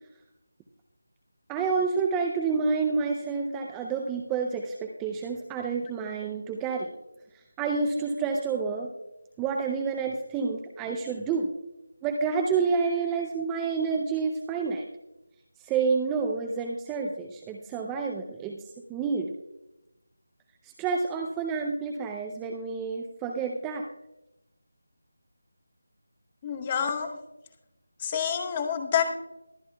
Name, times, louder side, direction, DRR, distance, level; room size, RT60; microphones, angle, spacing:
voice 1, 1.5-6.9 7.6-8.9 9.4-11.5 12.0-14.9 15.6-18.6 18.9-19.3 20.6-23.9, right 5 dB, 10° right, 3 dB, 0.4 m, -29 dB
voice 2, 26.4-27.1 28.0-29.0, left 8 dB, 20° left, 7 dB, 0.9 m, -27 dB
22.0 x 8.9 x 2.2 m, 0.92 s
figure-of-eight pair, 170°, 0 cm